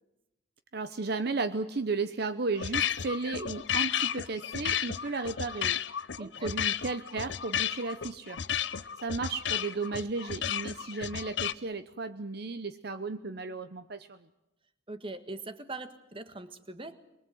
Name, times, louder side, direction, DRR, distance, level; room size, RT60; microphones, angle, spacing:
voice 1, 0.7-5.8 6.2-8.4 9.0-14.2, right 3 dB, 55° right, 10 dB, 0.8 m, -34 dB
sound 1, 2.6-11.5, left 9 dB, 65° left, 0.8 m, -33 dB
voice 2, 6.2-6.5 14.9-17.0, right 2 dB, 25° right, 10 dB, 1.5 m, -41 dB
23.0 x 23.0 x 7.8 m, 0.91 s
head